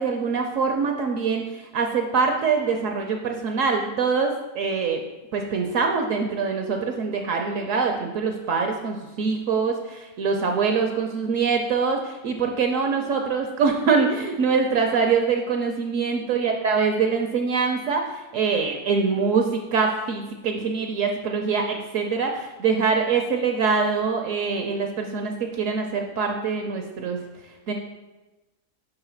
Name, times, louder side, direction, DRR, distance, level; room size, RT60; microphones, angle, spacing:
voice 1, 0.0-1.4 1.7-5.0 5.3-27.2 27.7-27.8, right 5 dB, 65° right, 3 dB, 0.9 m, -24 dB
5.3 x 3.9 x 5.6 m, 1.1 s
omnidirectional pair, 1.6 m